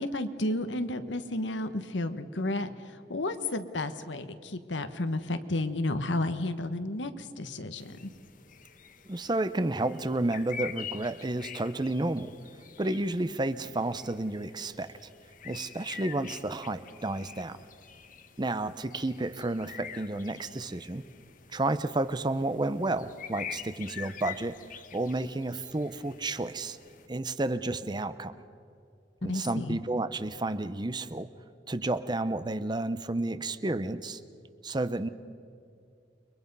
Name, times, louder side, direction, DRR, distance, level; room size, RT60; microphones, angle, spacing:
voice 1, 0.0-8.1 29.2-29.8, left 2 dB, 90° left, 9 dB, 1.3 m, -32 dB
sound 1, 7.8-27.1, left 8 dB, 45° left, 1.1 m, -46 dB
voice 2, 9.0-12.3 12.8-14.9 15.4-17.6 18.4-21.0 21.5-26.8 27.1-28.4 29.2-31.3 31.7-34.2 34.6-35.1, right 2 dB, 25° right, 13 dB, 0.7 m, -31 dB
29.5 x 23.0 x 5.4 m, 2.5 s
head